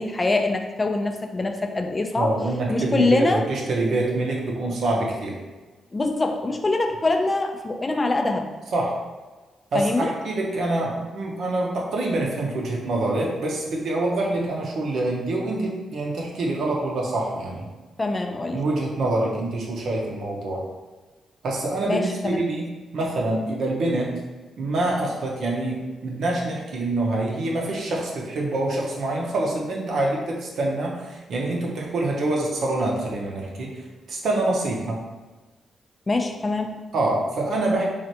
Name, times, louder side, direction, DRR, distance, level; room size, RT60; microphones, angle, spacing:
voice 1, 0.0-2.3 2.7-3.4 4.7-4.8 5.9-8.5 9.7-10.1 18.0-18.6 21.9-22.5 36.1-36.8, left 2 dB, 30° left, 4 dB, 0.4 m, -24 dB
voice 2, 2.1-5.4 8.7-8.9 9.7-17.6 18.5-20.6 21.4-22.7 22.9-24.1 24.6-33.7 34.1-35.0 36.9-37.8, right 2 dB, 70° right, -2 dB, 0.7 m, -25 dB
3.2 x 2.5 x 2.7 m, 1.2 s
supercardioid pair, 45°, 0 cm